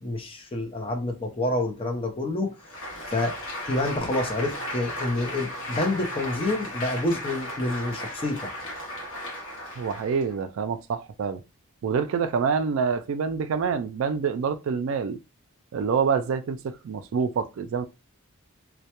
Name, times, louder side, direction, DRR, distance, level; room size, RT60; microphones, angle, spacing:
voice 1, 0.0-2.5 3.1-3.4 3.7-8.5, left 2 dB, 25° left, 0.5 m, -28 dB
Applause, 2.6-10.3, left 1 dB, 60° left, 0.9 m, -35 dB
voice 2, 9.8-11.4 11.8-15.2 15.7-17.9, right 6 dB, 60° right, 0.3 m, -26 dB
2.2 x 2.1 x 2.8 m
head